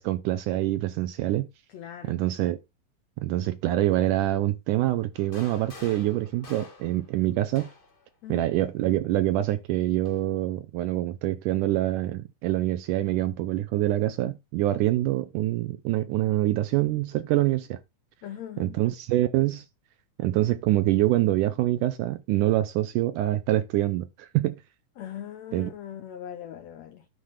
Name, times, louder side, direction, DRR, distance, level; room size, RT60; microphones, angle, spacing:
voice 1, 0.0-1.5 2.1-2.6 3.2-7.7 8.3-17.8 18.6-19.7 20.2-24.6 25.5-25.7, right 15 dB, 75° right, 1.9 m, -25 dB
voice 2, 1.7-2.2 8.2-8.5 18.2-18.8 25.0-27.1, left 10 dB, 90° left, 1.5 m, -40 dB
sound 1, 5.1-8.0 9.2-10.2, left 3 dB, 50° left, 0.6 m, -48 dB
9.5 x 3.3 x 6.5 m
omnidirectional pair, 4.2 m